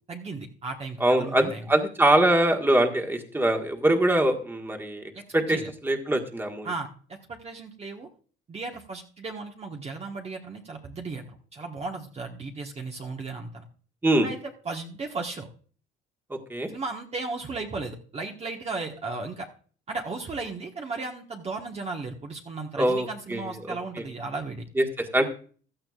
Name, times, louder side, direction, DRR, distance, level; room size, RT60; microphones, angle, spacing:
voice 1, 0.1-1.7 5.1-5.2 5.5-5.7 6.6-8.1 8.5-13.6 14.2-15.5 16.7-19.5 19.9-24.7, right 3 dB, 30° right, 1 dB, 1.4 m, -35 dB
voice 2, 1.0-6.7 14.0-14.3 16.3-16.7 22.8-23.8 24.8-25.3, right 1 dB, 10° right, 3 dB, 1.6 m, -23 dB
16.0 x 12.0 x 2.4 m, 0.42 s
cardioid pair, 100°, 20 cm